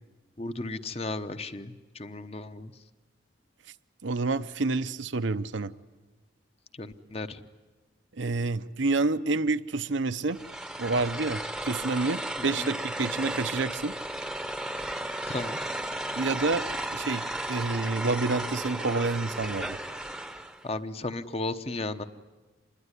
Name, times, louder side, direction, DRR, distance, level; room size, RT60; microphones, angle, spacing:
voice 1, 0.4-2.7 6.7-7.4 12.4-12.8 15.3-15.6 20.6-22.0, left 2 dB, 30° left, 10 dB, 0.9 m, -35 dB
voice 2, 4.0-5.7 8.2-10.4 10.8-13.9 16.2-16.7 16.9-19.8, right 3 dB, 75° right, 11 dB, 0.8 m, -28 dB
sound 1, 10.3-20.6, right 1 dB, 5° right, 0.9 m, -34 dB
26.5 x 21.5 x 9.8 m, 1.3 s
head